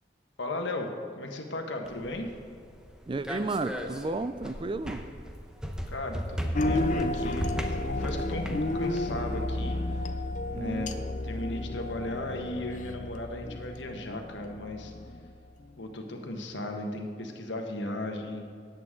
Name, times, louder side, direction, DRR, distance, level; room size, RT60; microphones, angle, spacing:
voice 1, 0.4-0.9 1.2-2.3 5.9-9.8 10.5-10.9 11.2-14.9 15.8-18.4, left 1 dB, 85° left, 3 dB, 1.4 m, -36 dB
sound 1, 1.8-9.0, equal, 5° right, 0.7 m, -38 dB
voice 2, 3.1-5.1 6.8-7.1 10.5-10.9, right 3 dB, 30° right, 12 dB, 0.4 m, -33 dB
sound 2, 6.5-15.7, left 1 dB, 45° left, 0.6 m, -32 dB
17.5 x 8.3 x 3.8 m, 2.3 s
head